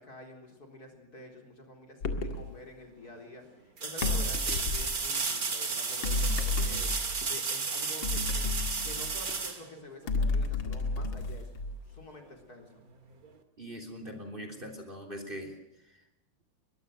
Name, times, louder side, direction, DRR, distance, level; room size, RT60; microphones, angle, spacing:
voice 1, 0.0-8.5 8.8-11.5 11.9-12.7, left 1 dB, 45° left, 3 dB, 4.5 m, -48 dB
sound 1, 2.0-2.5 4.0-5.0 6.0-7.3 8.0-9.4 10.1-12.0, left 3 dB, 70° left, 2.8 m, -31 dB
sound 2, 2.4-2.5 3.8-10.4 13.2-13.3, right 4 dB, 45° right, 2.5 m, -33 dB
voice 2, 13.6-15.6 15.8-16.0, equal, 25° right, 5 dB, 3.6 m, -42 dB
22.5 x 21.5 x 6.4 m, 0.90 s
omnidirectional pair, 2.3 m